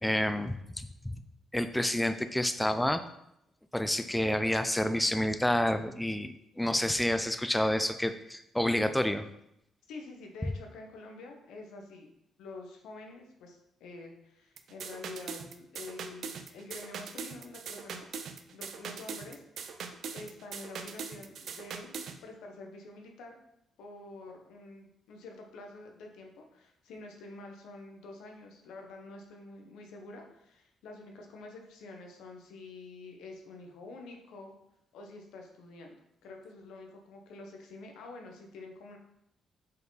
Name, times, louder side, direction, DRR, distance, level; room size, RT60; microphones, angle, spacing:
voice 1, 0.0-1.2 1.5-3.0 3.7-9.2, left 1 dB, 5° left, 9 dB, 0.4 m, -29 dB
voice 2, 9.9-12.1 12.4-18.1 18.5-19.8 20.1-22.0 22.2-23.4 23.8-34.5 34.9-35.9 36.2-39.0, left 2 dB, 85° left, 2 dB, 1.1 m, -47 dB
sound 1, 14.6-22.2, right 6 dB, 70° right, 0.5 m, -41 dB
5.3 x 4.5 x 4.1 m, 0.79 s
cardioid pair, 90°, 0 cm